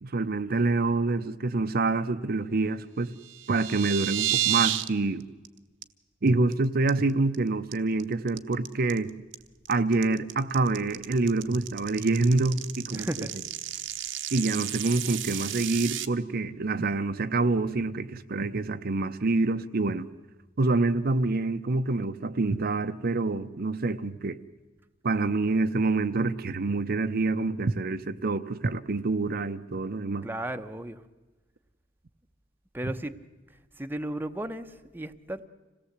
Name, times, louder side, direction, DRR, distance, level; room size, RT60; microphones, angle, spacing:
voice 1, 0.0-3.2 3.5-5.2 6.2-9.1 9.7-13.3 14.3-20.1 20.6-24.4 25.0-30.2 32.8-32.9, right 3 dB, 55° right, 10 dB, 0.7 m, -26 dB
sound 1, 3.2-4.9 5.2-5.5 5.8-5.9 6.3-6.5 6.9-7.4 7.7-16.1, right 13 dB, 75° right, 1.0 m, -31 dB
voice 2, 12.9-13.3 30.2-31.0 32.7-33.1 33.8-35.5, right 1 dB, 10° right, 8 dB, 0.8 m, -34 dB
26.0 x 17.5 x 8.0 m, 1.2 s
head